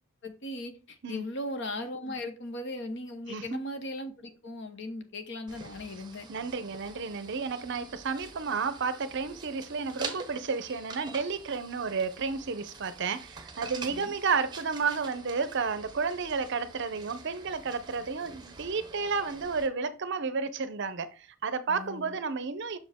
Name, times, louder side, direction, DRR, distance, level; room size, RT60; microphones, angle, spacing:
voice 1, 0.2-6.3 13.9-14.1 21.7-22.2, left 1 dB, 55° left, 1.0 m, -38 dB
voice 2, 3.3-3.6 6.3-22.8, right 5 dB, 50° right, 0.6 m, -32 dB
sound 1, 5.5-19.7, right 4 dB, 20° right, 0.8 m, -46 dB
6.3 x 5.1 x 3.5 m
head